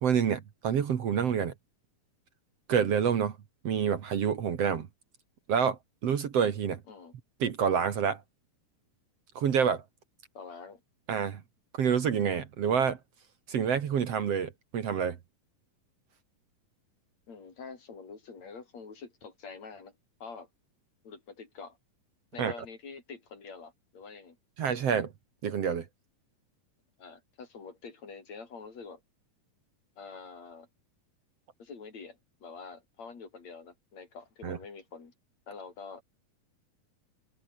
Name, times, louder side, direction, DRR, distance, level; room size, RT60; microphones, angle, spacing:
voice 1, 0.0-1.5 2.7-3.4 3.6-4.9 5.5-6.8 7.4-8.2 9.4-9.8 11.1-11.4 11.7-13.0 13.5-15.2 22.4-22.5 24.6-25.1 25.4-25.9 34.4-34.6, right 7 dB, 55° right, 2.3 m, -27 dB
voice 2, 10.3-10.8 17.3-19.9 20.2-20.5 21.0-21.8 22.3-24.4 27.0-29.0 30.0-30.7 31.6-35.1 35.5-36.0, left 5 dB, 50° left, 5.0 m, -46 dB
open air
omnidirectional pair, 4.0 m